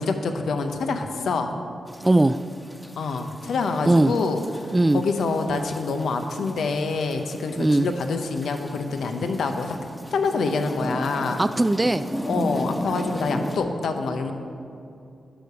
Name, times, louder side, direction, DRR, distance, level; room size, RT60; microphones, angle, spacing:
voice 1, 0.0-1.5 3.0-4.4 4.9-9.8 10.1-11.4 12.3-14.3, left 4 dB, 80° left, 6 dB, 0.8 m, -26 dB
sound 1, 1.9-13.6, equal, 5° left, 1.2 m, -36 dB
voice 2, 2.0-2.4 3.9-4.1 4.7-5.0 7.6-7.9 11.4-12.0, right 2 dB, 20° right, 12 dB, 0.3 m, -19 dB
11.5 x 5.0 x 6.8 m, 2.6 s
cardioid pair, 55°, 0 cm